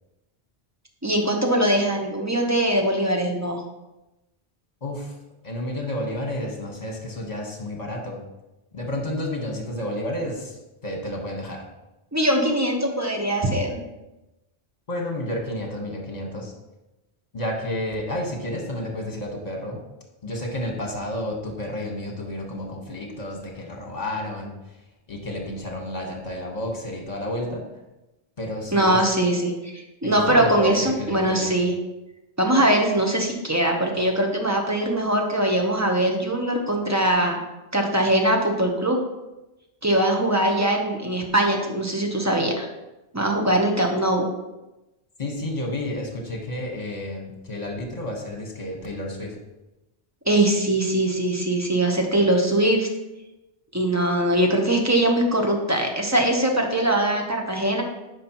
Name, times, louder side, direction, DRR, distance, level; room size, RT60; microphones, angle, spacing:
voice 1, 1.0-3.6 12.1-13.8 28.7-31.7 32.4-37.4 37.7-39.0 39.8-42.7 43.1-44.3 50.3-52.9 53.7-57.8, right 1 dB, 15° right, 2 dB, 0.9 m, -21 dB
voice 2, 4.8-5.1 5.4-8.2 8.7-11.6 14.9-16.5 17.3-19.8 20.2-24.8 25.1-27.6 28.4-29.0 30.0-31.6 45.2-49.4, left 1 dB, 40° left, 1 dB, 1.4 m, -31 dB
9.3 x 5.4 x 3.0 m, 1.0 s
omnidirectional pair, 1.1 m